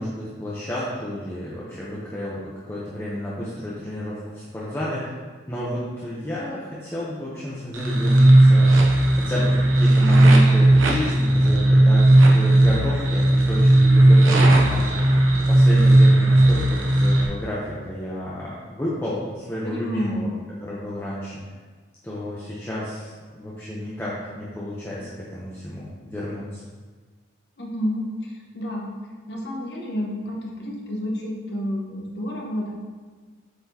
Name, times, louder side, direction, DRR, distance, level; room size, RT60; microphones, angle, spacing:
voice 1, 0.0-5.1 5.5-8.8 9.2-15.1 15.5-21.4 22.0-26.6, left 1 dB, 10° left, -8 dB, 0.7 m, -31 dB
sound 1, 7.7-17.3, right 1 dB, 90° right, 0.9 m, -15 dB
voice 2, 19.6-20.2 27.6-28.9 29.3-32.7, left 1 dB, 55° left, -2 dB, 1.1 m, -30 dB
7.9 x 4.2 x 2.8 m, 1.4 s
head